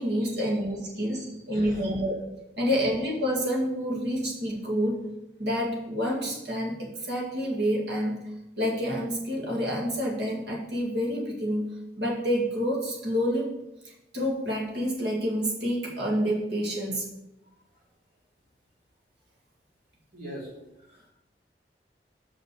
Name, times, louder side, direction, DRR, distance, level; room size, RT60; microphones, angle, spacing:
voice 1, 0.0-2.2 2.6-5.0 5.4-8.2 8.6-11.7 12.0-13.5 14.1-17.0, equal, 80° right, -2 dB, 2.2 m, -28 dB
voice 2, 1.1-2.0 17.7-17.8 20.1-20.5 20.8-21.1, equal, 50° right, -5 dB, 3.3 m, -44 dB
5.9 x 5.7 x 6.8 m, 0.93 s
head